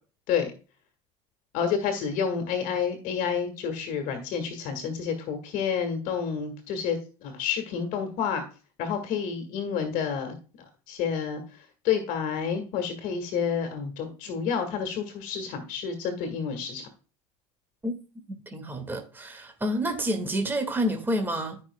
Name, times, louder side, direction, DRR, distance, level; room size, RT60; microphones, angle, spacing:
voice 1, 1.5-8.4 8.8-16.9, left 7 dB, 65° left, 1.9 m, -29 dB
voice 2, 18.3-21.6, equal, 15° right, 1.9 m, -29 dB
13.0 x 5.9 x 2.2 m
supercardioid pair, 105°, 15 cm